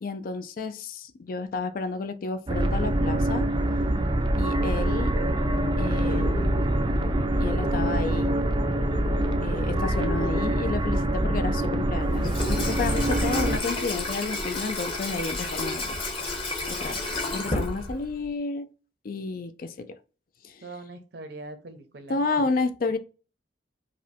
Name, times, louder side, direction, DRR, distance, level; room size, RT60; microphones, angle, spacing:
voice 1, 0.0-3.5 4.4-5.1 5.8-6.6 7.4-8.4 9.4-16.0 16.7-18.7 19.0-20.0 20.4-20.6 22.1-23.0, left 3 dB, 50° left, 0.4 m, -31 dB
sound 1, 2.5-13.6, right 1 dB, 25° right, 0.4 m, -25 dB
sound 2, 5.1-10.4, left 2 dB, 90° left, 0.7 m, -39 dB
Water tap faucet / Sink (filling or washing), 12.0-18.3, left 2 dB, 30° left, 1.0 m, -31 dB
voice 2, 20.6-22.5, right 2 dB, 65° right, 0.7 m, -42 dB
4.9 x 2.2 x 2.7 m
head